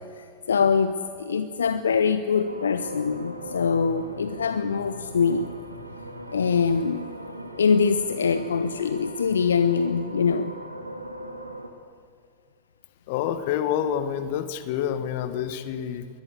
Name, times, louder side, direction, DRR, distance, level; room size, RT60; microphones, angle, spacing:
voice 1, 0.2-5.5 6.3-7.1 7.6-10.5, left 5 dB, 70° left, 11 dB, 0.8 m, -23 dB
sound 1, 2.4-11.7, equal, 85° right, 2.0 m, -39 dB
voice 2, 13.1-16.1, left 9 dB, 50° left, 11 dB, 1.5 m, -28 dB
22.5 x 20.0 x 8.1 m, 2.2 s
figure-of-eight pair, 90°, 0 cm